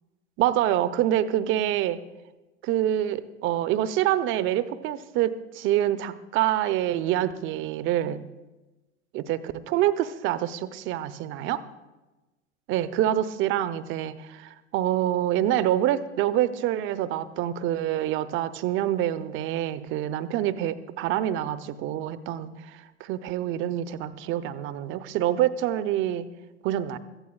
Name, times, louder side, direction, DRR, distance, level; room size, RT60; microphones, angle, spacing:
voice 1, 0.4-2.0 2.6-8.2 9.1-11.6 12.7-22.5 23.0-26.3 26.6-27.0, right 12 dB, 35° right, 14 dB, 0.7 m, -26 dB
24.0 x 15.0 x 2.3 m, 1.1 s
figure-of-eight pair, 85°, 36 cm